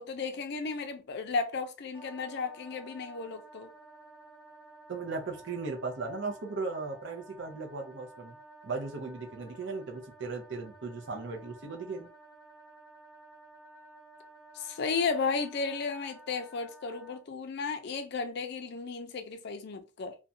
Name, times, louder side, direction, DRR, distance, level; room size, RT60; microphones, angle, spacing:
voice 1, 0.0-3.7 14.5-20.2, left 4 dB, 55° left, 0.4 m, -34 dB
Wind instrument woodwind instrument, 1.9-17.2, right 2 dB, 5° right, 0.8 m, -53 dB
voice 2, 4.9-8.4 8.6-12.1, right 3 dB, 60° right, 0.6 m, -37 dB
2.5 x 2.2 x 2.6 m
head